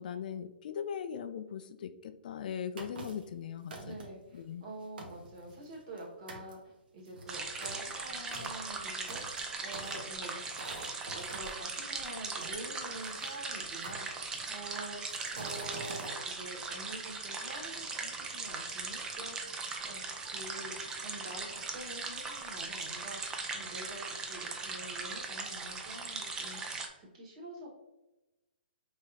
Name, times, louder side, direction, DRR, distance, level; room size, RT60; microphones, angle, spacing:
voice 1, 0.0-4.0 4.3-4.6, left 8 dB, 50° left, 11 dB, 0.4 m, -39 dB
sound 1, 2.8-3.3 3.7-4.2 4.7-4.8 5.0-6.0 6.3-6.5 7.0-11.5 12.4-13.3 13.8-14.6 15.0-16.1, right 3 dB, 65° right, 1.1 m, -46 dB
voice 2, 3.8-10.4 11.1-19.5 19.8-20.0 20.3-27.7, right 1 dB, 40° right, -1 dB, 1.5 m, -47 dB
sound 2, 7.3-26.9, right 4 dB, 10° right, 0.4 m, -39 dB
4.9 x 3.6 x 2.7 m, 1.0 s
hypercardioid pair, 155°, 6 cm